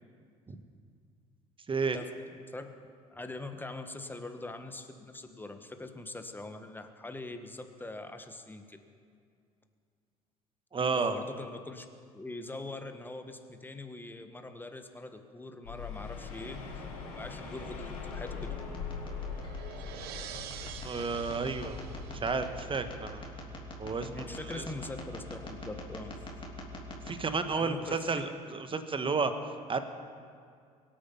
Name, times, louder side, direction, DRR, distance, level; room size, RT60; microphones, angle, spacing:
voice 1, 3.1-8.8 10.7-11.9 12.1-16.6 17.1-18.5 24.1-26.2 27.6-28.1, left 2 dB, 10° left, 7 dB, 1.5 m, -42 dB
voice 2, 10.7-11.2 20.2-23.3 23.8-24.6 27.1-29.3 29.7-29.8, right 4 dB, 25° right, 9 dB, 1.3 m, -32 dB
sound 1, 15.6-22.7, left 5 dB, 75° left, 3.3 m, -42 dB
sound 2, 17.3-27.1, left 1 dB, 25° left, 3.1 m, -45 dB
sound 3, 18.1-23.1, right 10 dB, 55° right, 1.0 m, -48 dB
23.5 x 9.0 x 5.6 m, 2.2 s
hypercardioid pair, 60°, 19 cm